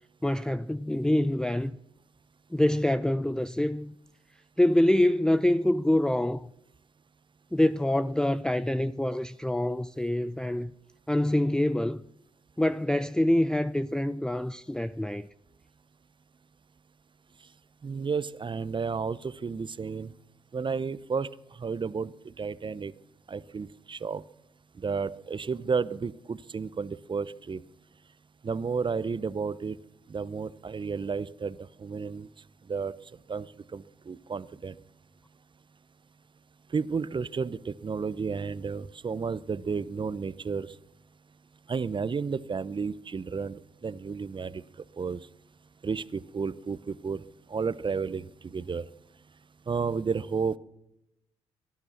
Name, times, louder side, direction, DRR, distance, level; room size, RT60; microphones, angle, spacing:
voice 1, 0.2-1.7 2.5-3.9 4.6-6.5 7.5-10.7 11.1-12.0 12.6-15.3, left 1 dB, 5° left, 0.6 m, -25 dB
voice 2, 17.8-20.1 20.5-21.3 21.6-22.9 23.3-24.2 24.8-27.6 28.4-29.8 30.1-32.3 32.7-33.0 33.3-33.5 33.7-34.8 36.7-40.7 41.7-44.6 45.0-45.2 45.8-47.2 47.5-48.8 49.7-50.6, right 5 dB, 35° right, 0.9 m, -32 dB
18.5 x 12.5 x 5.9 m
hypercardioid pair, 45°, 14 cm